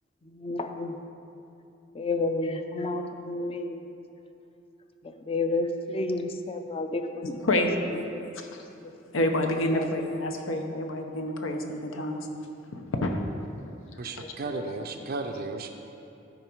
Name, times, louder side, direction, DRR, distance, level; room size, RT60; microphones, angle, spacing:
voice 1, 0.2-1.0 1.9-3.9 5.0-8.3 8.7-9.9 14.2-15.1, left 2 dB, 30° left, 7 dB, 0.5 m, -32 dB
voice 2, 9.1-12.3 12.7-13.2, left 1 dB, 80° left, 4 dB, 0.9 m, -28 dB
voice 3, 14.0-15.7, right 3 dB, 50° right, 5 dB, 0.5 m, -34 dB
12.5 x 5.1 x 4.6 m, 2.8 s
head